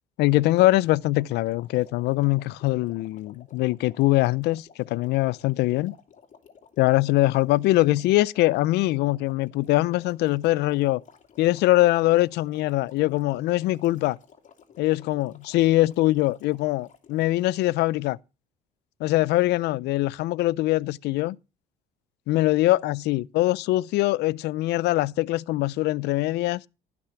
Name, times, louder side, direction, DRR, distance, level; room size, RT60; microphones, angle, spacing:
voice 1, 0.2-5.9 6.8-11.0 11.4-14.2 14.8-18.2 19.0-21.4 22.3-26.6, left 17 dB, 80° left, 0.5 m, -22 dB
sound 1, 1.1-17.6, left 6 dB, 45° left, 2.7 m, -54 dB
15.0 x 6.1 x 5.8 m
cardioid pair, 110°, 17 cm